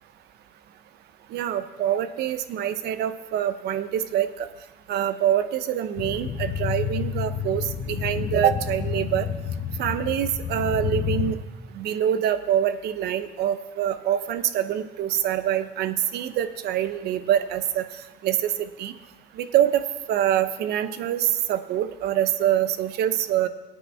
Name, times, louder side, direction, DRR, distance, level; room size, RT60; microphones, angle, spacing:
voice 1, 1.3-4.5 4.9-9.3 9.8-11.4 11.7-17.9 18.2-18.9 19.4-19.8 20.1-23.5, right 10 dB, 75° right, 11 dB, 0.8 m, -25 dB
sound 1, 6.0-11.3, left 8 dB, 65° left, 1.1 m, -29 dB
18.0 x 9.1 x 3.5 m, 1.1 s
cardioid pair, 110°, 17 cm